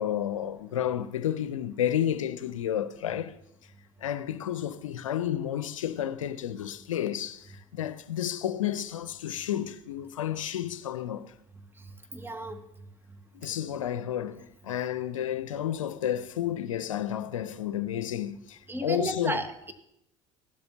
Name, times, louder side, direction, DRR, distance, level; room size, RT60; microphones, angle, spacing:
voice 1, 0.0-3.3 4.0-11.3 13.3-19.4, left 11 dB, 85° left, 0.6 m, -31 dB
voice 2, 12.1-12.6 18.7-19.7, right 2 dB, 15° right, 1.5 m, -33 dB
15.5 x 12.0 x 2.8 m
hypercardioid pair, 70°, 16 cm